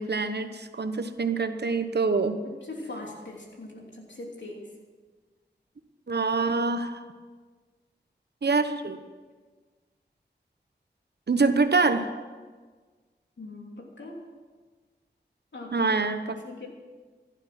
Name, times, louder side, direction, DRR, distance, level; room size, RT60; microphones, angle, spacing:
voice 1, 0.0-2.4 6.1-7.0 8.4-9.0 11.3-12.1 15.7-16.2, right 4 dB, 65° right, 9 dB, 1.1 m, -25 dB
voice 2, 2.4-4.7 13.4-14.3 15.5-15.8 16.3-16.7, left 2 dB, 85° left, -1 dB, 3.0 m, -41 dB
15.5 x 11.5 x 6.1 m, 1.4 s
wide cardioid pair, 55°, 18 cm